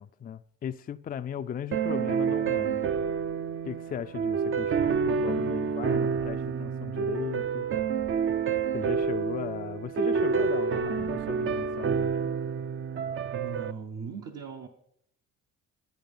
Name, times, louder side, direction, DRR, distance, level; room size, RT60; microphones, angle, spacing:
voice 1, 0.0-2.9 3.7-7.7 8.7-12.3, left 8 dB, 30° left, 0.4 m, -37 dB
sound 1, 1.7-13.7, right 6 dB, 45° right, 0.6 m, -28 dB
voice 2, 13.3-14.7, right 5 dB, 60° right, 1.0 m, -38 dB
10.5 x 10.5 x 5.4 m
cardioid pair, 90°, 30 cm